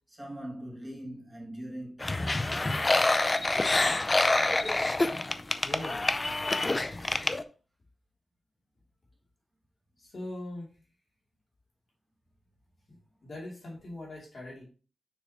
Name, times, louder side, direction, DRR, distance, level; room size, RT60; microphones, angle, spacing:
voice 1, 0.1-2.7, right 1 dB, 5° right, 2.0 m, -42 dB
sound 1, 2.0-7.4, left 2 dB, 25° left, 0.4 m, -27 dB
voice 2, 5.6-6.1 10.0-10.7 12.9-14.6, left 1 dB, 45° left, 2.6 m, -41 dB
6.6 x 6.4 x 2.9 m
wide cardioid pair, 145°, 0 cm